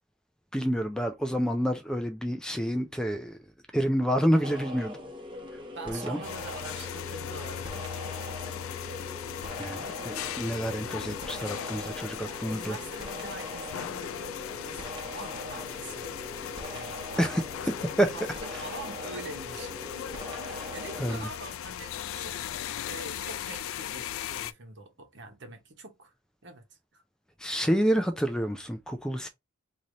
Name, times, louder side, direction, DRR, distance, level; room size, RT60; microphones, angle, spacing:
voice 1, 0.5-3.4 3.7-5.0 5.9-6.2 9.6-12.8 17.2-17.4 18.0-18.1 18.5-18.6 20.4-21.3 27.4-29.3, equal, 5° left, 0.3 m, -28 dB
sound 1, 4.4-21.2, left 1 dB, 25° right, 1.0 m, -41 dB
voice 2, 5.7-8.0 12.2-16.1 16.7-17.3 17.7-19.7 20.7-22.4 22.8-26.1 26.4-26.7 26.9-27.0, right 3 dB, 60° right, 1.0 m, -44 dB
sound 2, 6.2-24.5, left 10 dB, 85° left, 0.3 m, -38 dB
3.1 x 2.7 x 3.8 m
head